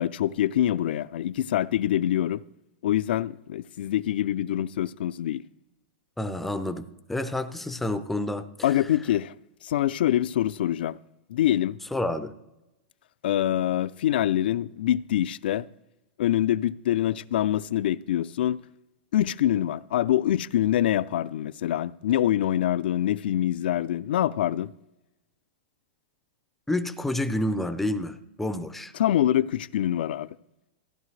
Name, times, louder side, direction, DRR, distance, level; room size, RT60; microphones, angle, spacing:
voice 1, 0.0-2.4 2.8-5.4 8.6-9.3 9.6-11.0 11.3-11.8 13.2-15.7 16.2-18.6 19.1-24.7 28.9-30.3, left 12 dB, 75° left, 0.4 m, -25 dB
voice 2, 6.2-8.8 11.9-12.3 26.7-28.9, left 1 dB, 5° left, 0.4 m, -29 dB
14.5 x 10.5 x 3.2 m
supercardioid pair, 160°, 5 cm